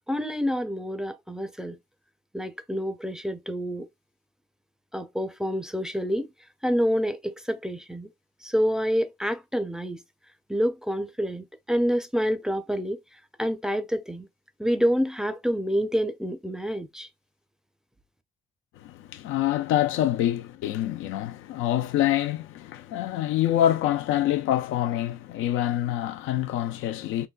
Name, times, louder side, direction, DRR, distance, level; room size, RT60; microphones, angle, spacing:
voice 1, 0.1-1.8 2.3-3.9 4.9-6.3 6.6-8.1 8.4-10.0 10.5-13.0 13.4-14.3 14.6-17.1, equal, 5° right, 0.5 m, -27 dB
voice 2, 18.8-27.3, left 12 dB, 85° left, 0.4 m, -26 dB
3.9 x 2.2 x 2.3 m
cardioid pair, 90°, 20 cm